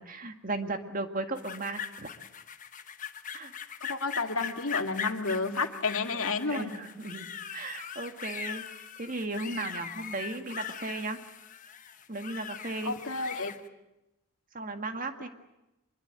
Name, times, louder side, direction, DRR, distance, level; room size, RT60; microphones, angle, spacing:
voice 1, 0.0-2.1 3.3-3.5 6.5-8.6 9.0-11.2 12.1-12.9 14.5-15.3, right 2 dB, 40° right, 7 dB, 2.0 m, -36 dB
sound 1, 1.4-13.6, left 7 dB, 35° left, 1.1 m, -40 dB
voice 2, 3.9-6.7 12.8-13.5, left 3 dB, 70° left, 5 dB, 2.3 m, -31 dB
25.5 x 22.5 x 9.0 m, 0.93 s
head